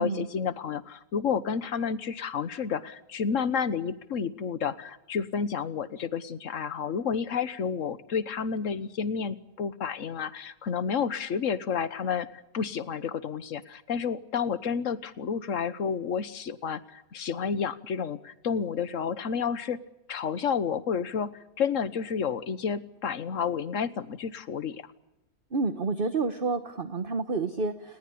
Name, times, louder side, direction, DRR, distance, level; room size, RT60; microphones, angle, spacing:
voice 1, 0.0-19.8 20.1-24.8, left 6 dB, 55° left, 14 dB, 1.5 m, -30 dB
voice 2, 25.5-28.0, right 3 dB, 35° right, 10 dB, 1.2 m, -29 dB
29.5 x 20.0 x 8.6 m, 0.95 s
omnidirectional pair, 1.7 m